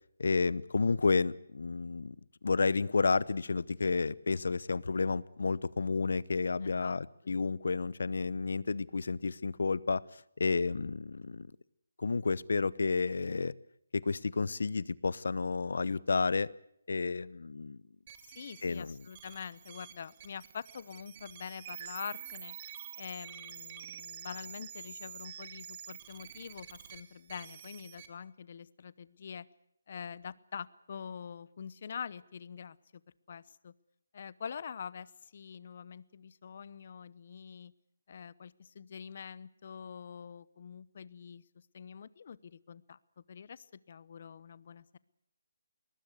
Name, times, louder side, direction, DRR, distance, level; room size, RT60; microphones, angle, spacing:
voice 1, 0.2-2.2 2.4-11.5 12.0-13.5 13.9-16.5 16.9-17.8 18.6-19.0, left 4 dB, 75° left, 22 dB, 0.8 m, -31 dB
voice 2, 6.6-7.0 7.2-7.4 18.3-22.6 23.0-29.5 29.9-33.0 33.3-33.7 34.1-37.7 38.1-45.0, left 7 dB, 45° left, 21 dB, 0.8 m, -45 dB
sound 1, 18.1-28.1, right 10 dB, 25° right, 1.6 m, -48 dB
22.0 x 20.0 x 8.2 m, 0.74 s
hypercardioid pair, 170°, 0 cm